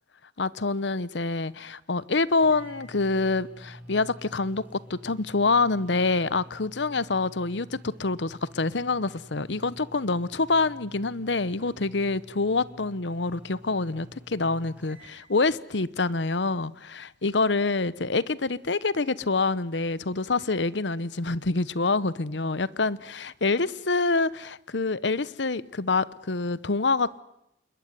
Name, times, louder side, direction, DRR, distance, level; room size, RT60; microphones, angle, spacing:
voice 1, 0.4-27.2, left 3 dB, 75° left, 1.0 m, -26 dB
sound 1, 2.0-2.1 2.4-15.2, equal, 5° right, 6.1 m, -49 dB
28.0 x 21.5 x 9.5 m
head